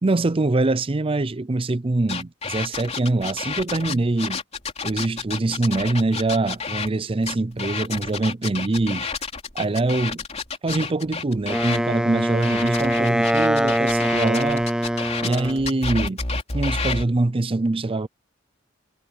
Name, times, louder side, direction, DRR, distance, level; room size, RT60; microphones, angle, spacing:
voice 1, 0.0-4.4 4.8-9.1 9.5-10.2 10.6-14.7 15.2-16.2 16.5-18.1, right 2 dB, 30° right, 0.5 m, -24 dB
sound 1, 2.1-6.9 7.2-11.8 12.4-17.1, left 4 dB, 35° left, 3.4 m, -30 dB
Wind instrument woodwind instrument, 11.5-15.7, equal, 5° right, 0.9 m, -23 dB
head